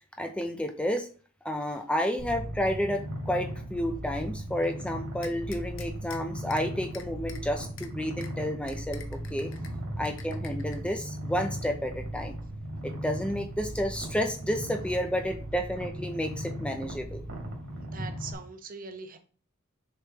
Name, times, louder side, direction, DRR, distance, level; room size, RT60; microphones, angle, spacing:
voice 1, 0.2-1.1 1.4-12.4 12.8-17.2, equal, 5° left, 5 dB, 0.5 m, -31 dB
Purr, 2.2-18.3, equal, 80° right, 2.2 m, -37 dB
sound 1, 5.2-6.2 6.5-6.6 6.9-7.4 7.8-7.9 8.2-8.3 8.7-9.7 10.1-10.8, left 7 dB, 70° left, 0.8 m, -45 dB
voice 2, 17.8-19.2, right 4 dB, 45° right, 7 dB, 0.8 m, -42 dB
6.8 x 4.9 x 2.9 m, 0.40 s
head